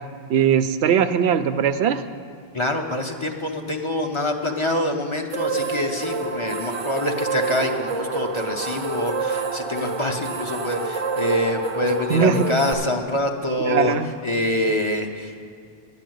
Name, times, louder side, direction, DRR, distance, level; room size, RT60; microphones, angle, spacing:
voice 1, 0.3-2.0 12.1-12.5 13.6-14.1, right 7 dB, 85° right, 10 dB, 0.9 m, -20 dB
voice 2, 2.5-13.9 14.2-15.5, left 1 dB, 30° left, 3 dB, 0.8 m, -25 dB
sound 1, 5.3-12.7, right 4 dB, 35° right, 0.8 m, -28 dB
11.5 x 5.9 x 9.1 m, 2.4 s
omnidirectional pair, 1.1 m